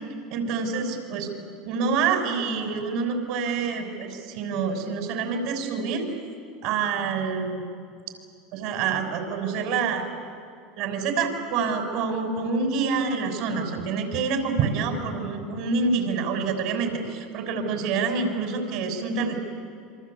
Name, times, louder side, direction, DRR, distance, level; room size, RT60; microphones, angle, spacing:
voice 1, 0.3-1.3 1.7-6.0 6.6-7.6 8.5-10.0 10.8-19.4, right 5 dB, 60° right, 5 dB, 6.2 m, -27 dB
27.0 x 25.5 x 8.5 m, 2.3 s
hypercardioid pair, 85°, 0 cm